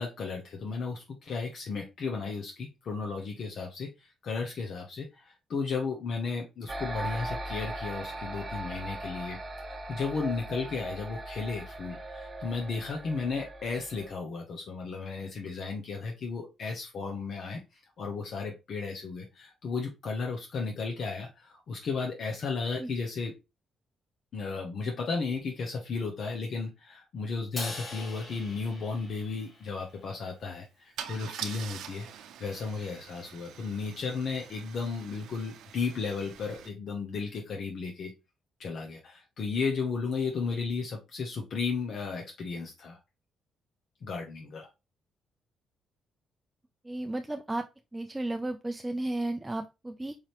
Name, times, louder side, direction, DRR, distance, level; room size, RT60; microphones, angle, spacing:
voice 1, 0.0-9.4 9.6-23.3 24.3-38.1 38.6-43.0 44.0-44.7, left 4 dB, 60° left, 1 dB, 1.0 m, -34 dB
sound 1, 6.7-14.1, right 1 dB, 30° right, 1.4 m, -39 dB
Crash cymbal, 27.6-29.9, left 2 dB, 40° left, 1.4 m, -42 dB
Car / Engine starting / Idling, 28.3-28.4 28.7-29.0 31.0-36.7, right 9 dB, 80° right, 0.6 m, -44 dB
voice 2, 46.8-47.7 47.9-50.2, right 2 dB, 15° right, 5 dB, 0.4 m, -33 dB
4.8 x 2.8 x 3.1 m, 0.25 s
cardioid pair, 90°, 0 cm